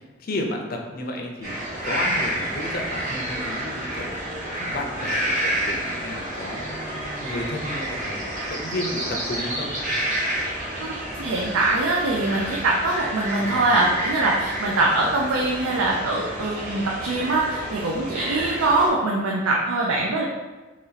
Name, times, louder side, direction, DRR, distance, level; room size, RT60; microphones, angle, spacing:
voice 1, 0.2-8.2 8.5-9.7 13.4-14.0, left 1 dB, 45° left, 2 dB, 0.5 m, -32 dB
sound 1, 1.4-18.9, right 1 dB, 40° right, 1.1 m, -29 dB
voice 2, 10.8-20.2, right 2 dB, 85° right, -2 dB, 0.5 m, -23 dB
3.0 x 2.7 x 3.9 m, 1.2 s
head